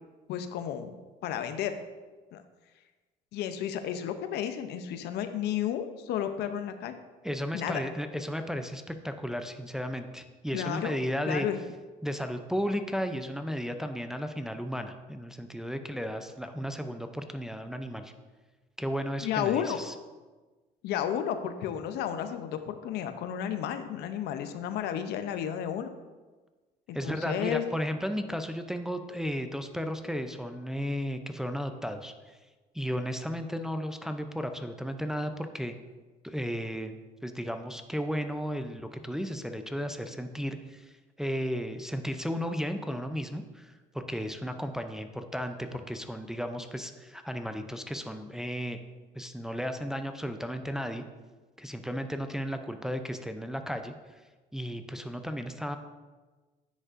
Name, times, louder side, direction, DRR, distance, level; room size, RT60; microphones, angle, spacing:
voice 1, 0.3-0.9 1.2-1.7 2.3-2.4 3.3-7.0 7.5-7.8 10.5-11.0 11.3-11.6 19.2-19.8 20.8-25.9 26.9-27.6, left 9 dB, 80° left, 9 dB, 0.6 m, -32 dB
voice 2, 7.2-11.5 12.0-18.1 18.8-19.9 26.9-32.4 32.7-35.7 36.2-40.9 41.2-48.8 49.1-51.0 51.6-53.9 54.5-55.8, equal, 5° right, 7 dB, 0.4 m, -34 dB
9.7 x 5.3 x 2.5 m, 1.3 s
cardioid pair, 110°, 17 cm